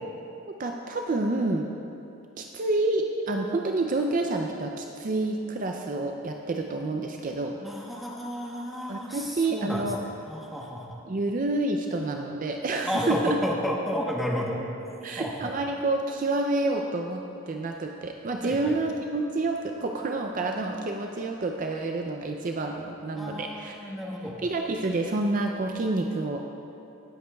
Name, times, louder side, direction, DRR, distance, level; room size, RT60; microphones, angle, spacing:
voice 1, 0.5-1.7 2.4-7.6 8.9-10.0 11.1-13.4 15.0-24.0 24.4-26.4, right 2 dB, 40° right, 3 dB, 0.4 m, -28 dB
voice 2, 7.6-9.8 10.3-11.0 12.8-14.6 15.2-15.5 18.4-18.6 23.2-24.4, equal, ahead, -3 dB, 1.0 m, -31 dB
18.5 x 8.3 x 2.3 m, 2.8 s
head